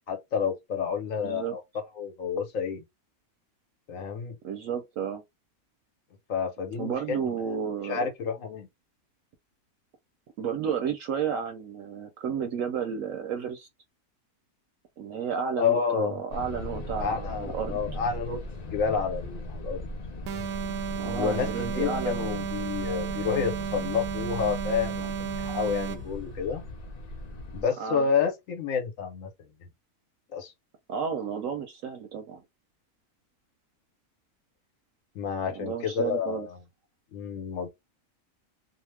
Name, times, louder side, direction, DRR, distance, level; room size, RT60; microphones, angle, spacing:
voice 1, 0.1-2.8 3.9-4.4 6.3-7.2 7.8-8.7 15.6-16.2 17.0-19.9 21.0-26.6 27.5-29.3 30.3-30.5 35.1-36.5 37.1-37.7, left 6 dB, 65° left, 1.1 m, -29 dB
voice 2, 1.2-1.6 4.4-5.2 6.7-8.1 10.4-13.7 15.0-17.8 21.0-22.3 27.8-28.1 30.9-32.4 35.5-36.5, right 7 dB, 70° right, 0.9 m, -32 dB
sound 1, 16.3-27.6, left 1 dB, 90° left, 0.3 m, -38 dB
sound 2, 20.3-26.2, right 8 dB, 85° right, 1.1 m, -33 dB
2.8 x 2.0 x 3.2 m
omnidirectional pair, 1.6 m